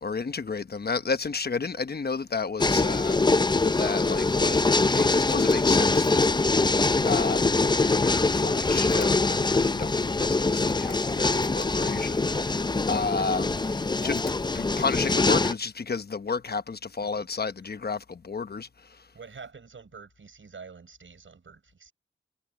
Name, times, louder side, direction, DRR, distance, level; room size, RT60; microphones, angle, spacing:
voice 1, 0.0-3.3 3.6-14.2 14.5-18.7, left 4 dB, 50° left, 1.0 m, -32 dB
sound 1, 2.6-15.5, left 3 dB, 20° left, 0.5 m, -23 dB
sound 2, 5.0-15.8, left 4 dB, 65° left, 5.6 m, -52 dB
voice 2, 19.1-21.9, right 5 dB, 75° right, 6.5 m, -47 dB
wide cardioid pair, 100°, 21 cm